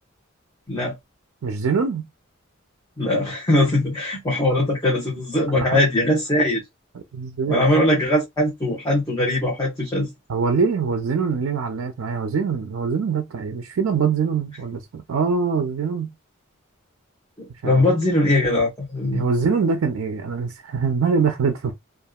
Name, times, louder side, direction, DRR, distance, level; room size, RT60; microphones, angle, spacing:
voice 1, 1.4-2.1 5.6-5.8 7.1-7.6 10.3-16.1 17.6-17.8 19.1-21.7, right 5 dB, 75° right, 0.4 m, -23 dB
voice 2, 3.0-6.6 7.5-10.1 17.4-19.3, left 1 dB, 20° left, 0.9 m, -21 dB
2.8 x 2.4 x 2.2 m
head